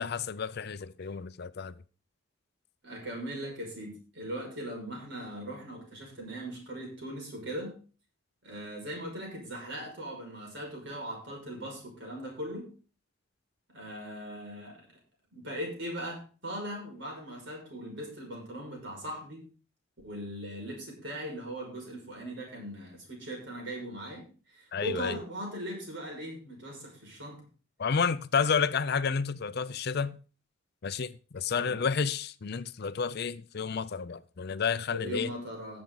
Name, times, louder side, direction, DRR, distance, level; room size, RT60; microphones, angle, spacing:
voice 1, 0.0-1.7 24.7-25.1 27.8-30.2 30.8-35.3, left 6 dB, 55° left, 0.5 m, -30 dB
voice 2, 2.8-7.8 8.4-12.7 13.7-14.9 15.3-19.4 20.0-27.4 31.5-31.8 34.9-35.8, equal, 65° right, 5.8 m, -39 dB
16.5 x 7.2 x 4.0 m
head